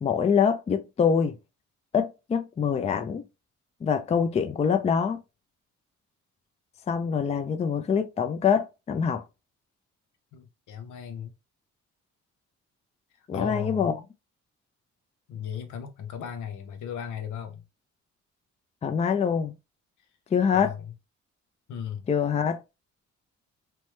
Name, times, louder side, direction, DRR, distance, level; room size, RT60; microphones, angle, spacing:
voice 1, 0.0-1.4 1.9-3.2 3.8-5.2 6.9-9.3 13.3-13.9 18.8-19.5 20.3-20.7 22.1-22.6, left 7 dB, 25° left, 0.4 m, -25 dB
voice 2, 10.3-11.3 13.2-13.9 15.3-17.6 20.5-20.9 21.7-22.1, left 8 dB, 80° left, 0.7 m, -36 dB
3.0 x 2.1 x 3.1 m
cardioid pair, 90°, 30 cm